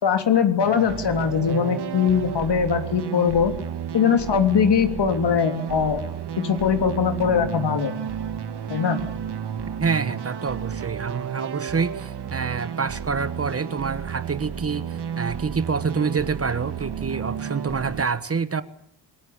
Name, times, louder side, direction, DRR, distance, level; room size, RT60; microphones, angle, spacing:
voice 1, 0.0-3.5 3.9-6.0 6.4-7.9 8.7-9.0, left 6 dB, 70° left, 7 dB, 3.4 m, -21 dB
sound 1, 0.6-18.1, right 8 dB, 65° right, 2.3 m, -32 dB
voice 2, 9.8-18.6, right 5 dB, 35° right, 13 dB, 1.4 m, -27 dB
26.0 x 20.0 x 8.6 m, 0.68 s
cardioid pair, 105°, 42 cm